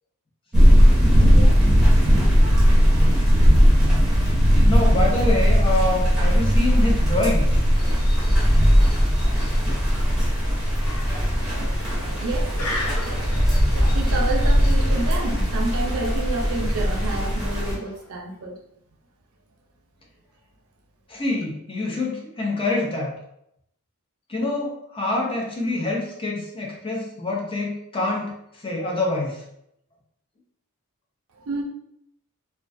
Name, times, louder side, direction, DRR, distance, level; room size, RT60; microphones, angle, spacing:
sound 1, 0.5-17.8, equal, ahead, 0.8 m, -18 dB
voice 1, 1.2-1.6 12.2-12.5 13.9-18.6 31.5-31.6, right 2 dB, 75° right, 2 dB, 0.5 m, -29 dB
voice 2, 4.6-7.6 21.1-23.1 24.3-29.4, left 2 dB, 25° left, -1 dB, 0.5 m, -26 dB
sound 2, 7.7-18.1, left 2 dB, 80° left, 0.5 m, -39 dB
2.2 x 2.2 x 2.5 m, 0.75 s
head